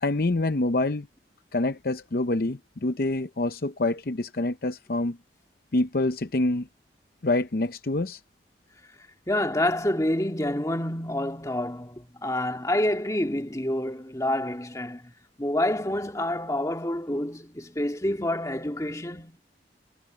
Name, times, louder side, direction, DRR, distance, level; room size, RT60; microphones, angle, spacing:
voice 1, 0.0-1.1 1.5-5.2 5.7-6.7 7.2-8.2, left 2 dB, 55° left, 0.7 m, -26 dB
voice 2, 9.3-15.0 15.4-19.4, left 1 dB, 20° left, 2.0 m, -28 dB
head